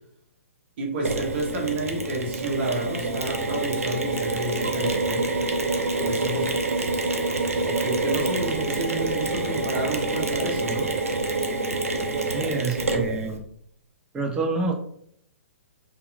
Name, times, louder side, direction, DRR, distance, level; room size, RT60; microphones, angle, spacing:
voice 1, 0.8-5.3 6.0-6.6 7.6-10.9, right 2 dB, 45° right, -1 dB, 0.8 m, -30 dB
Mechanisms, 1.0-13.4, right 2 dB, 75° right, 0.5 m, -27 dB
voice 2, 12.3-13.4 14.1-14.7, right 3 dB, 10° right, 2 dB, 0.3 m, -27 dB
2.8 x 2.4 x 2.3 m, 0.69 s
figure-of-eight pair, 120°, 8 cm